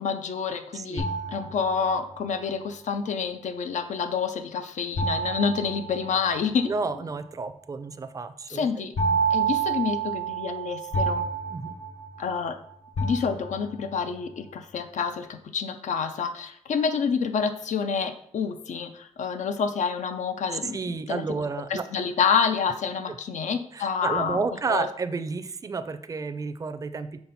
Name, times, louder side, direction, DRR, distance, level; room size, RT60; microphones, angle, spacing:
voice 1, 0.0-6.7 8.5-8.9 9.3-11.3 12.2-12.6 13.0-21.2 21.7-24.4 24.7-24.9, left 6 dB, 85° left, 9 dB, 0.5 m, -28 dB
voice 2, 0.7-1.0 6.6-8.7 9.1-9.2 11.5-11.7 20.7-21.8 23.7-27.2, right 4 dB, 30° right, 11 dB, 0.4 m, -31 dB
sound 1, 1.0-2.2 5.0-6.6 9.0-12.5 13.0-13.9, right 4 dB, 70° left, 0.9 m, -29 dB
5.8 x 4.3 x 4.0 m, 0.66 s
wide cardioid pair, 115°, 12 cm